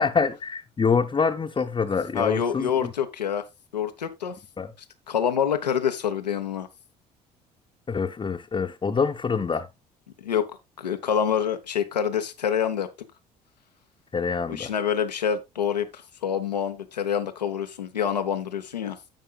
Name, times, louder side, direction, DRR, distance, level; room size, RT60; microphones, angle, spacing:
voice 1, 0.0-2.9 4.6-4.7 7.9-9.7 14.1-14.7, left 5 dB, 25° left, 0.9 m, -25 dB
voice 2, 2.1-3.4 3.7-4.4 5.1-6.7 10.2-10.5 10.8-12.9 14.5-19.0, left 8 dB, 85° left, 0.9 m, -26 dB
16.5 x 5.5 x 2.2 m
figure-of-eight pair, 55°, 21 cm